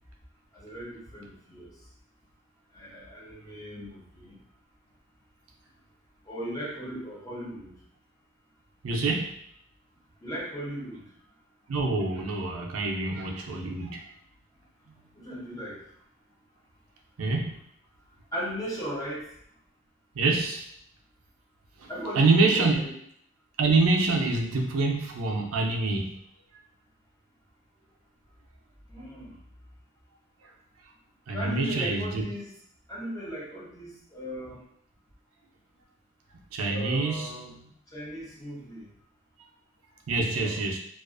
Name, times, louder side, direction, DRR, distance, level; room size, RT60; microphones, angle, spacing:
voice 1, 0.5-1.8 2.7-4.4 6.3-7.7 10.2-11.1 15.2-15.8 18.3-19.3 21.9-22.9 28.9-29.4 31.3-32.5 32.9-34.6 36.7-37.5 37.9-38.9 40.3-40.6, equal, 15° left, -5 dB, 0.6 m, -37 dB
voice 2, 8.8-9.3 11.7-14.0 17.2-17.6 20.2-20.6 21.8-21.9 22.2-22.9 23.6-26.1 31.3-32.2 36.5-37.7 40.1-40.8, right 3 dB, 85° right, 1 dB, 0.5 m, -26 dB
2.4 x 2.3 x 2.4 m, 0.68 s
head